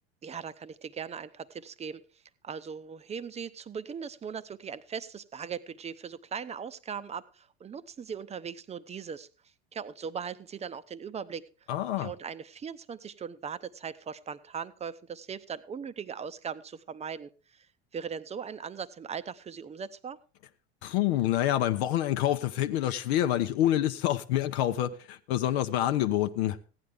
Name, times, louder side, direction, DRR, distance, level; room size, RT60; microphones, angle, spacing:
voice 1, 0.2-2.0 2.4-9.3 9.7-11.4 12.0-17.7 17.9-20.2, right 7 dB, 20° right, 0.6 m, -39 dB
voice 2, 11.7-12.1 20.8-26.6, left 12 dB, 70° left, 0.7 m, -27 dB
15.0 x 9.7 x 3.5 m
hypercardioid pair, 90°, 33 cm